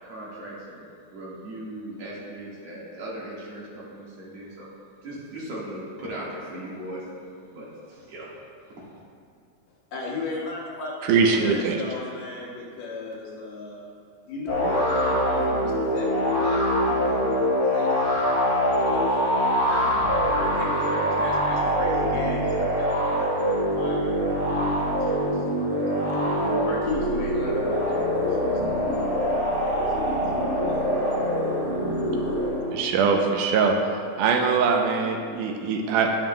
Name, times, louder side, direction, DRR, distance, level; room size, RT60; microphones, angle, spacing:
voice 1, 0.0-0.8 1.1-4.7 5.0-7.1 7.5-8.3 8.6-9.0, right 1 dB, 55° right, -6 dB, 2.6 m, -38 dB
voice 2, 9.9-13.9 14.2-19.2 19.6-25.6 26.0-29.6 29.8-31.0, left 3 dB, 85° left, -4 dB, 3.0 m, -36 dB
voice 3, 11.0-11.8 32.7-33.8 34.2-36.1, right 5 dB, 85° right, 3 dB, 2.1 m, -22 dB
sound 1, 14.5-32.9, equal, 25° left, 0.7 m, -24 dB
10.0 x 8.8 x 2.2 m, 2.4 s
omnidirectional pair, 3.7 m